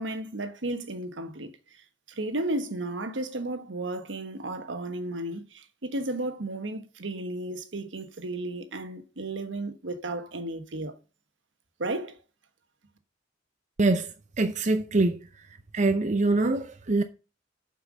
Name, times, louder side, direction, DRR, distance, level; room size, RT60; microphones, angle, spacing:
voice 1, 0.0-11.0 11.8-12.2, right 2 dB, 75° right, 1.3 m, -34 dB
voice 2, 13.8-14.1 14.4-15.2 15.7-17.0, right 2 dB, 40° right, 0.6 m, -24 dB
7.6 x 5.6 x 6.3 m
head